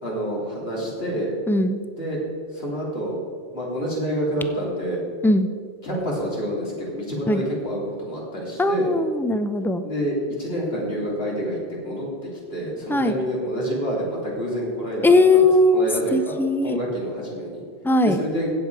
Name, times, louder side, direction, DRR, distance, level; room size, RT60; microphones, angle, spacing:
voice 1, 0.0-1.3 2.0-2.2 2.5-3.2 3.5-5.0 5.8-8.9 9.8-15.4 15.7-16.4 16.6-17.6 18.0-18.5, equal, 70° left, -4 dB, 3.2 m, -28 dB
voice 2, 1.5-1.8 5.2-5.5 7.3-7.4 8.6-9.8 12.9-13.2 15.0-16.8 17.8-18.2, left 2 dB, 5° left, 9 dB, 0.3 m, -19 dB
16.5 x 7.5 x 4.7 m, 2.1 s
omnidirectional pair, 1.1 m